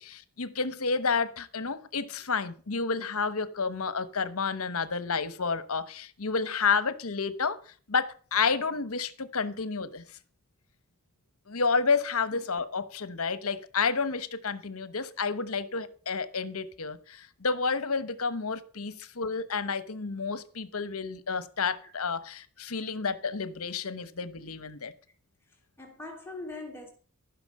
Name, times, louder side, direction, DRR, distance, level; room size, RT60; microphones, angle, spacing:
voice 1, 0.0-10.0 11.5-24.9, left 5 dB, 75° left, 1.1 m, -30 dB
voice 2, 25.5-26.9, left 2 dB, 10° left, 3.2 m, -42 dB
14.5 x 6.1 x 7.6 m
head